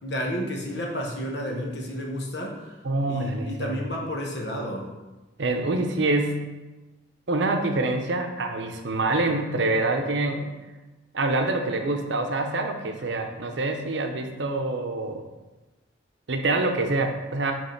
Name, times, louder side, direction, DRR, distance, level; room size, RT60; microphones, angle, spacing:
voice 1, 0.0-2.6 3.1-4.9, equal, 60° left, 0 dB, 1.1 m, -31 dB
voice 2, 2.8-3.8 5.4-6.5 7.3-10.5 11.1-15.2 16.3-17.5, right 2 dB, 70° right, 4 dB, 0.7 m, -26 dB
5.4 x 3.6 x 5.8 m, 1.1 s
head